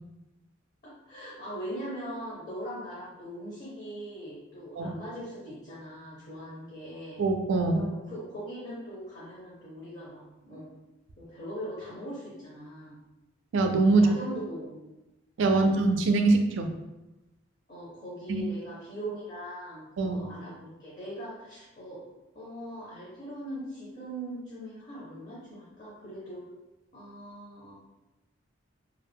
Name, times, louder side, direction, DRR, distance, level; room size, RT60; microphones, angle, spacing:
voice 1, 0.8-7.3 7.7-10.7 11.2-13.0 14.0-15.0 15.5-15.8 17.7-22.0 22.3-26.4 26.9-27.7, right 1 dB, 40° left, -7 dB, 0.7 m, -41 dB
voice 2, 7.2-7.9 13.5-14.1 15.4-16.7 18.3-18.4 20.0-20.3, right 3 dB, 70° right, 5 dB, 0.3 m, -23 dB
2.4 x 2.1 x 3.3 m, 1.0 s
head